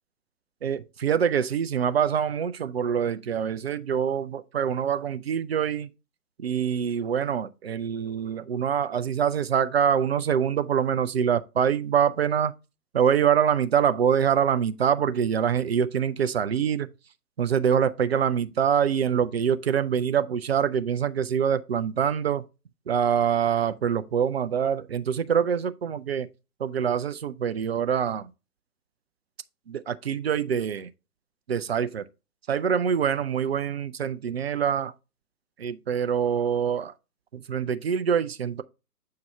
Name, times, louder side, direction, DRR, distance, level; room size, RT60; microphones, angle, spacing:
voice 1, 0.6-5.9 6.4-12.5 12.9-16.9 17.4-22.4 22.9-26.3 26.6-28.3 29.7-30.9 31.5-32.0 32.5-34.9 35.6-36.9 37.3-38.6, right 8 dB, 40° right, 0.5 m, -25 dB
7.5 x 4.7 x 3.3 m
figure-of-eight pair, 125°, 48 cm